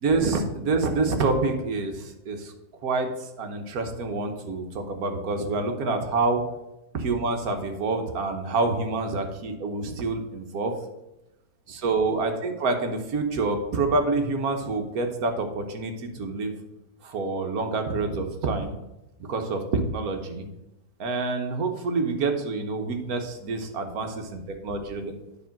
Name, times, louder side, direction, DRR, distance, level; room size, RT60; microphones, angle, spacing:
voice 1, 0.0-2.5 2.8-6.4 6.9-10.7 11.7-16.5 17.0-18.7 19.3-20.5 21.0-25.1, right 3 dB, 65° right, 5 dB, 1.4 m, -27 dB
9.8 x 3.8 x 5.8 m, 0.93 s
omnidirectional pair, 1.8 m